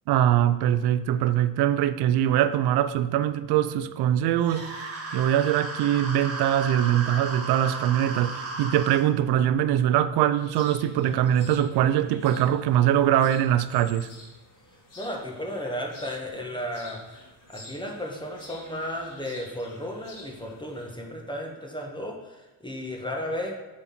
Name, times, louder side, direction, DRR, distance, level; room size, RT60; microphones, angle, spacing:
voice 1, 0.1-4.8 5.1-14.1, right 11 dB, 65° right, 0.6 m, -22 dB
sound 1, 4.4-9.0, right 3 dB, 35° right, 1.7 m, -35 dB
sound 2, 10.4-20.9, left 2 dB, 45° left, 2.6 m, -49 dB
voice 2, 15.0-23.5, equal, 10° left, 1.4 m, -34 dB
6.7 x 4.4 x 5.8 m
supercardioid pair, 70°, 42 cm